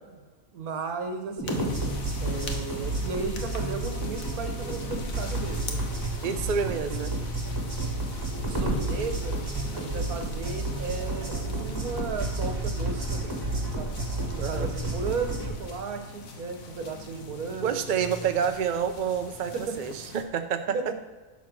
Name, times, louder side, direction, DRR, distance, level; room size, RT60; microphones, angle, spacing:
voice 1, 0.5-1.7 2.2-5.8 6.6-7.1 8.4-9.3 9.7-13.4 13.8-13.9 14.3-17.8 18.4-18.5 19.5-19.8 20.7-20.9, right 5 dB, 75° right, 6 dB, 1.4 m, -35 dB
sound 1, 1.4-15.5, right 2 dB, 15° right, 1.7 m, -31 dB
sound 2, 1.5-20.2, left 3 dB, 65° left, 1.4 m, -43 dB
voice 2, 6.2-7.1 14.4-14.7 17.6-20.8, right 7 dB, 55° right, 7 dB, 0.5 m, -28 dB
9.8 x 4.2 x 6.1 m, 1.3 s
omnidirectional pair, 1.6 m